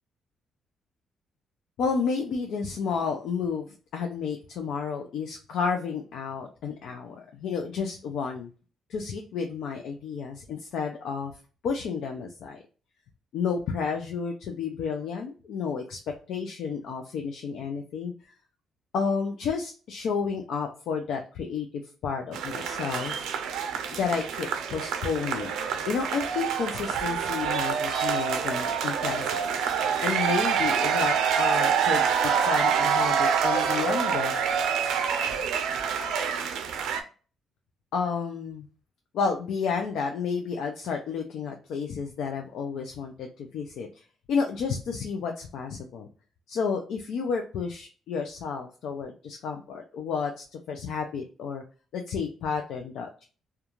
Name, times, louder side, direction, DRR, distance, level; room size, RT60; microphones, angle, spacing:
voice 1, 1.8-8.5 8.9-11.3 11.6-12.6 13.3-16.0 16.3-18.1 18.9-21.7 22.0-23.2 23.9-25.5 25.9-29.6 30.0-34.3 37.9-38.7 39.1-44.0 44.3-46.1 46.5-51.6 51.9-53.3, left 5 dB, 75° left, 3 dB, 0.4 m, -31 dB
sound 1, 22.3-37.0, right 7 dB, 85° right, 0.4 m, -26 dB
2.4 x 2.2 x 2.9 m, 0.37 s
cardioid pair, 90°, 0 cm